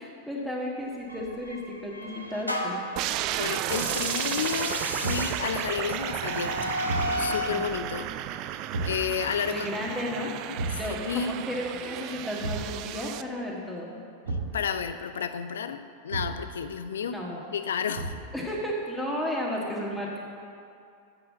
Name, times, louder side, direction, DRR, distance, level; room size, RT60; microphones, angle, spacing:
voice 1, 0.0-2.8 7.5-7.6 9.4-10.3 10.7-14.0 17.1-17.4 18.3-20.2, left 1 dB, ahead, -4 dB, 1.5 m, -33 dB
sound 1, 1.1-2.9 3.6-7.6, left 1 dB, 90° left, 1.0 m, -33 dB
sound 2, 3.0-13.2, right 12 dB, 40° right, 0.3 m, -33 dB
voice 2, 3.4-6.6 7.2-9.7 10.5-11.4 14.5-17.2 17.5-18.1, left 7 dB, 65° left, 11 dB, 0.5 m, -32 dB
Thump thud, 5.0-5.4 6.9-7.2 8.7-9.1 10.6-10.9 12.4-12.8 14.3-14.6 16.1-16.5 18.0-18.3, right 3 dB, 70° right, 1.5 m, -32 dB
7.8 x 7.0 x 7.5 m, 2.4 s
figure-of-eight pair, 90°, 0 cm